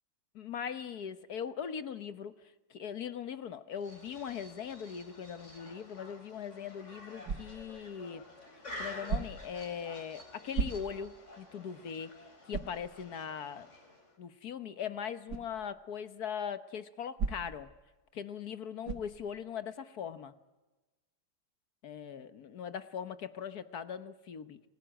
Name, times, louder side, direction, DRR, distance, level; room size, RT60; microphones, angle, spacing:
voice 1, 0.3-2.3 2.7-8.3 8.8-12.1 12.5-13.7 14.2-17.7 18.1-20.3 21.8-24.6, left 7 dB, 65° left, 12 dB, 1.6 m, -40 dB
sound 1, 3.8-14.2, left 1 dB, 45° left, 4.2 m, -50 dB
sound 2, 7.2-7.8 9.1-9.6 10.5-11.2 11.7-11.8 12.5-12.9 15.3-15.5 17.2-17.7 18.8-19.2, right 5 dB, 85° right, 2.4 m, -36 dB
27.5 x 20.0 x 9.0 m, 1.2 s
omnidirectional pair, 1.8 m